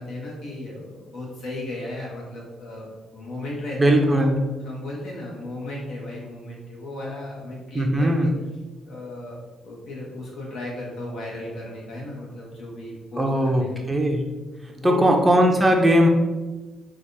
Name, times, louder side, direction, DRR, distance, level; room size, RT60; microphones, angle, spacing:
voice 1, 0.0-8.3 8.8-9.4 9.6-13.7 14.7-15.1, left 1 dB, 75° left, -3 dB, 1.0 m, -35 dB
voice 2, 3.8-4.4 7.7-8.3 13.2-14.2 14.8-16.1, equal, 15° right, 2 dB, 0.4 m, -19 dB
3.4 x 2.3 x 2.6 m, 1.2 s
cardioid pair, 90°, 0 cm